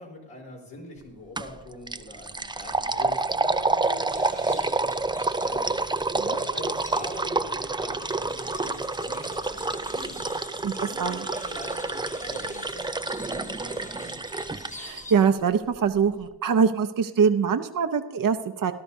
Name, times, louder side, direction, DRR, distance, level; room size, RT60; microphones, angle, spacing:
voice 1, 0.0-5.9 6.3-10.3 10.8-14.2, left 1 dB, 80° left, -4 dB, 3.8 m, -43 dB
sound 1, 1.4-1.6 1.9-14.7, right 3 dB, 10° right, 0.4 m, -28 dB
sound 2, 4.1-15.1, left 1 dB, 15° left, 1.1 m, -46 dB
voice 2, 10.6-11.2 14.8-18.7, right 6 dB, 45° right, 8 dB, 0.7 m, -23 dB
18.5 x 11.5 x 2.7 m, 1.1 s
cardioid pair, 45°, 46 cm